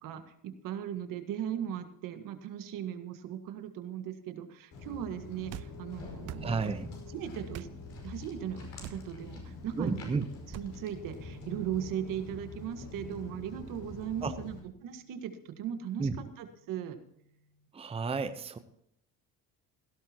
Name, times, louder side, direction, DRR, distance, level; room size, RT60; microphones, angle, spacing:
voice 1, 0.0-6.7 7.1-7.7 8.0-10.2 10.5-14.6 14.8-17.0, right 9 dB, 70° right, 7 dB, 1.7 m, -38 dB
Walk footsteps, 4.7-14.6, left 3 dB, 55° left, 5.4 m, -45 dB
sound 1, 5.5-5.7 6.2-6.5 7.5-7.7 8.8-9.1 10.5-10.7, right 14 dB, 50° right, 0.5 m, -43 dB
voice 2, 6.4-6.9 9.8-10.2 14.2-14.3 16.0-16.2 17.7-18.6, right 4 dB, 15° right, 10 dB, 0.8 m, -32 dB
sound 2, 11.4-17.7, left 2 dB, 20° left, 2.3 m, -56 dB
17.0 x 12.0 x 2.9 m, 0.75 s
cardioid pair, 105°, 34 cm